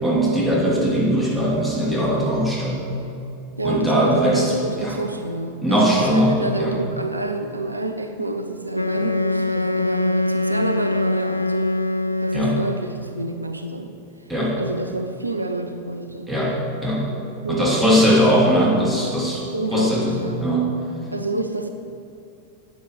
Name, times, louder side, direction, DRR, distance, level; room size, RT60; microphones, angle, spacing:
voice 1, 0.0-2.8 3.6-5.0 5.6-6.8 12.3-12.6 14.3-14.6 16.3-17.0 17.5-19.4 19.7-20.7, equal, 5° right, -4 dB, 2.8 m, -20 dB
voice 2, 3.6-11.8 12.2-13.9 14.6-16.3 17.4-18.2 19.5-20.5 21.1-21.7, right 2 dB, 80° right, 7 dB, 0.7 m, -28 dB
Wind instrument woodwind instrument, 8.7-12.9, left 2 dB, 90° left, 0.6 m, -23 dB
11.5 x 9.3 x 7.7 m, 2.6 s
figure-of-eight pair, 90°, 0 cm